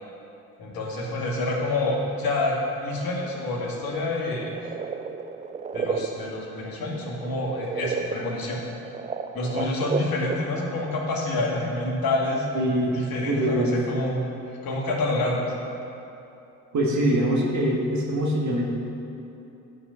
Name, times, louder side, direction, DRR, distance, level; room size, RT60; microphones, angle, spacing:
voice 1, 0.6-4.5 5.7-8.6 9.3-12.5 12.9-15.5, left 2 dB, 50° left, -2 dB, 2.2 m, -27 dB
sound 1, 4.3-10.6, right 5 dB, 20° right, 0.4 m, -32 dB
voice 2, 12.5-13.7 16.7-18.6, right 1 dB, 40° right, -2 dB, 1.8 m, -24 dB
9.8 x 4.7 x 6.7 m, 2.9 s
hypercardioid pair, 55°, 44 cm